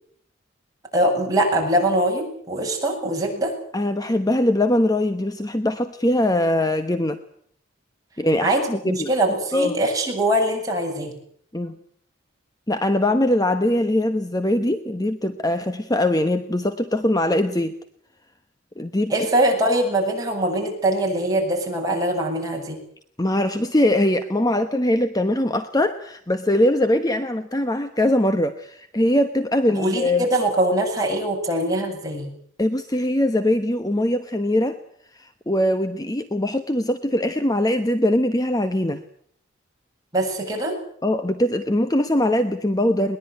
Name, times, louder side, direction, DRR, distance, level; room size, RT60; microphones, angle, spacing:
voice 1, 0.9-3.5 8.4-11.1 19.1-22.8 29.7-32.3 40.1-40.7, right 1 dB, 20° right, 0 dB, 7.7 m, -22 dB
voice 2, 3.7-7.2 8.2-9.1 9.5-9.7 11.5-11.8 12.7-17.7 18.8-19.1 23.2-30.2 32.6-34.8 35.1-39.0 41.0-43.2, left 1 dB, 20° left, 9 dB, 1.1 m, -21 dB
22.0 x 20.5 x 9.4 m, 0.64 s
head